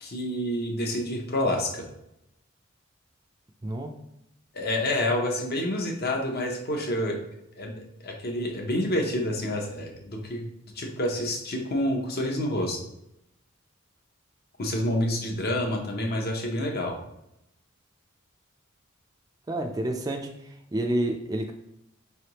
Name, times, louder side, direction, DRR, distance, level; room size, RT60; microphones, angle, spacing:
voice 1, 0.0-1.9 4.5-7.2 7.6-10.5 10.7-12.8 14.6-17.0, left 1 dB, 50° left, 2 dB, 0.8 m, -28 dB
voice 2, 3.6-3.9 19.5-20.3 20.7-21.5, right 1 dB, 20° right, 3 dB, 0.3 m, -28 dB
4.7 x 3.3 x 2.9 m, 0.82 s
head